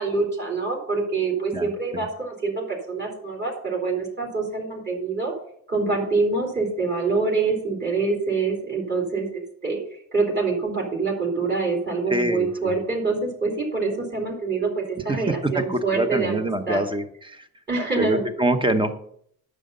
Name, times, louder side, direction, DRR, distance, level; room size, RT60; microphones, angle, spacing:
voice 1, 0.0-5.3 5.7-9.8 10.1-16.8 17.7-18.2, right 4 dB, 30° right, -1 dB, 3.3 m, -25 dB
voice 2, 12.1-12.7 15.1-15.2 15.5-17.4 18.0-18.9, right 1 dB, 15° right, 8 dB, 1.0 m, -25 dB
10.0 x 6.7 x 5.5 m, 0.65 s
cardioid pair, 115°, 34 cm